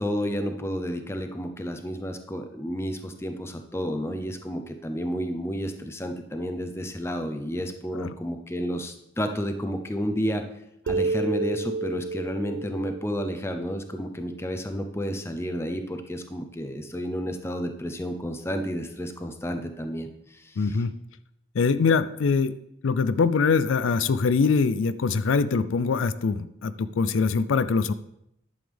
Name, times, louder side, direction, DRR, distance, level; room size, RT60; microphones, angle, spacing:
voice 1, 0.0-10.4 10.9-20.7, equal, 15° left, 6 dB, 0.6 m, -31 dB
sound 1, 10.9-14.4, right 3 dB, 60° right, 0.3 m, -31 dB
voice 2, 20.6-20.9 21.5-22.5 22.8-27.9, left 5 dB, 80° left, 14 dB, 0.4 m, -23 dB
11.0 x 7.1 x 3.4 m, 0.78 s
head